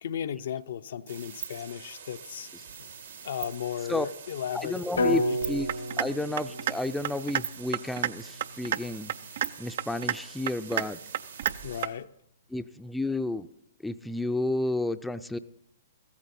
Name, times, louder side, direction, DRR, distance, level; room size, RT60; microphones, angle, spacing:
voice 1, 0.0-2.5 2.8-2.9 3.2-5.4 11.6-12.1, left 9 dB, 65° left, 0.6 m, -35 dB
sound 1, 1.1-11.9, right 7 dB, 80° right, 2.7 m, -43 dB
voice 2, 4.5-5.2 5.5-5.7 6.0-9.1 9.6-11.0 12.5-13.5 13.8-15.4, left 2 dB, 5° left, 0.5 m, -31 dB
sound 2, 5.0-9.0, equal, 85° left, 1.3 m, -33 dB
sound 3, 5.7-6.1 6.4-6.7 7.0-7.4 7.7-8.1 8.4-8.8 9.1-9.5 9.8-10.2 10.5-10.8 11.1-11.5 11.8-11.9, right 10 dB, 60° right, 0.4 m, -28 dB
15.5 x 14.0 x 4.2 m
hypercardioid pair, 125°, 0 cm